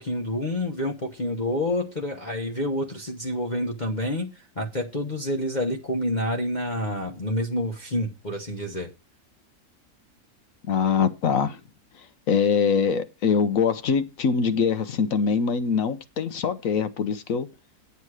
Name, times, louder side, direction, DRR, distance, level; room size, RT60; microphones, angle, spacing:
voice 1, 0.0-8.9, left 1 dB, 30° left, 1.0 m, -28 dB
voice 2, 10.7-11.6 12.0-17.5, left 6 dB, 60° left, 1.1 m, -23 dB
9.2 x 8.3 x 4.8 m
omnidirectional pair, 1.8 m